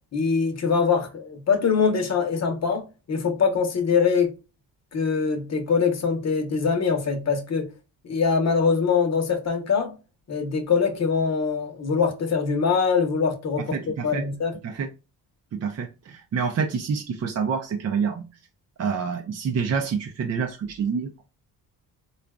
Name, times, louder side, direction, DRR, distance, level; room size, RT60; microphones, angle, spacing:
voice 1, 0.1-4.4 4.9-7.7 8.0-9.9 10.3-13.8 14.0-14.6, left 5 dB, 40° left, 0.9 m, -23 dB
voice 2, 13.7-14.2 14.6-14.9 15.5-18.3 18.8-21.2, right 6 dB, 40° right, 0.5 m, -27 dB
3.7 x 2.3 x 2.2 m
supercardioid pair, 70°, 40 cm